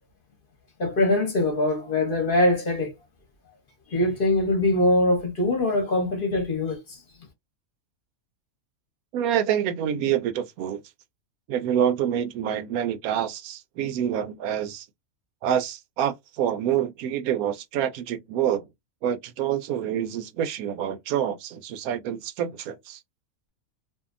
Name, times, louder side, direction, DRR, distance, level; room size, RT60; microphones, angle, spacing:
voice 1, 0.8-2.9 3.9-6.8, left 1 dB, 45° left, 0.9 m, -22 dB
voice 2, 9.1-10.8 11.5-14.9 15.4-18.7 19.0-23.0, right 9 dB, 90° right, 1.0 m, -27 dB
2.7 x 2.4 x 2.4 m
omnidirectional pair, 1.5 m